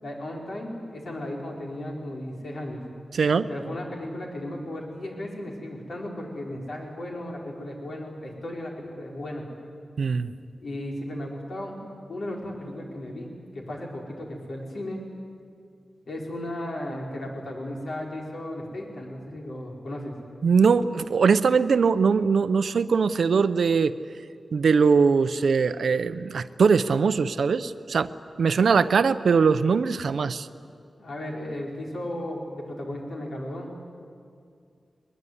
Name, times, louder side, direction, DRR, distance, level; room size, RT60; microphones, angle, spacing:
voice 1, 0.0-2.8 3.5-9.4 10.6-11.8 12.1-15.0 16.1-20.1 31.0-33.7, left 1 dB, 60° left, -1 dB, 4.8 m, -35 dB
voice 2, 3.1-3.5 10.0-10.3 20.4-23.9 24.5-28.1 28.4-30.5, right 5 dB, 75° right, 13 dB, 0.7 m, -21 dB
21.0 x 21.0 x 9.6 m, 2.3 s
wide cardioid pair, 125°, 0 cm